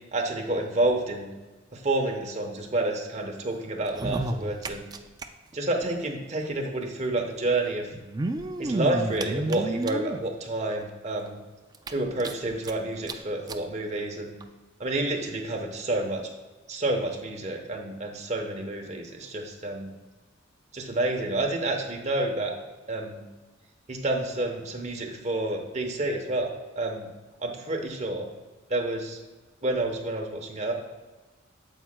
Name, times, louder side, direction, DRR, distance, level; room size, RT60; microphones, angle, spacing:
voice 1, 0.1-1.3 1.7-4.9 5.5-7.9 8.6-11.4 11.9-14.4 14.8-16.2 16.7-19.9 20.7-22.5 22.9-23.2 23.9-26.5 26.8-27.1 27.4-28.3 28.7-29.2 29.6-30.7, right 2 dB, 35° right, 2 dB, 0.9 m, -29 dB
sound 1, 3.8-5.3 5.5-5.6 5.8-5.9 7.0-7.1 7.9-10.2 10.8-10.9 11.3-11.4 11.7-12.7 13.1-13.2 13.5-13.6 14.4-14.5, right 2 dB, 20° right, 0.3 m, -31 dB
8.9 x 7.3 x 2.2 m, 1.2 s
head